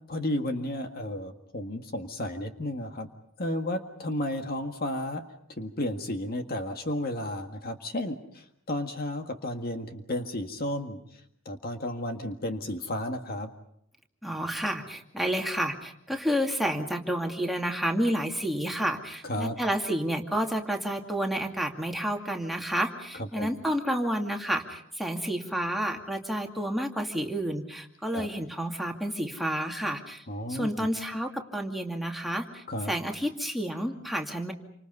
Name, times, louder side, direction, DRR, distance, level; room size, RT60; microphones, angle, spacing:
voice 1, 0.1-3.1 3.4-5.2 5.6-11.0 11.5-13.5 19.2-19.6 23.1-23.6 28.1-28.3 30.3-30.9 32.7-32.9, left 1 dB, 50° left, 5 dB, 1.8 m, -33 dB
voice 2, 14.2-30.2 30.5-34.5, equal, ahead, 1 dB, 2.4 m, -30 dB
28.5 x 26.0 x 5.4 m, 0.73 s
head